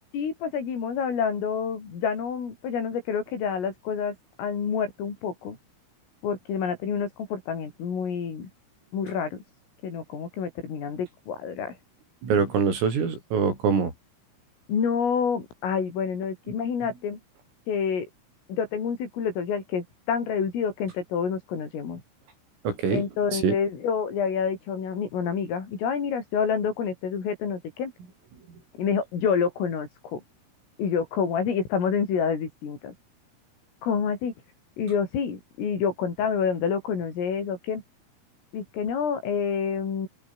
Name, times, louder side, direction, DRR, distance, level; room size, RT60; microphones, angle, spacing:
voice 1, 0.1-5.6 6.2-8.5 8.9-9.4 9.8-11.8 14.7-17.2 17.7-18.1 18.5-22.0 22.9-27.9 28.8-30.2 30.8-32.9 33.8-34.3 34.8-37.8 38.5-40.1, left 6 dB, 80° left, 8.1 m, -28 dB
voice 2, 12.2-13.9 22.7-23.0 23.3-23.6, right 6 dB, 85° right, 9.3 m, -24 dB
omnidirectional pair, 5.8 m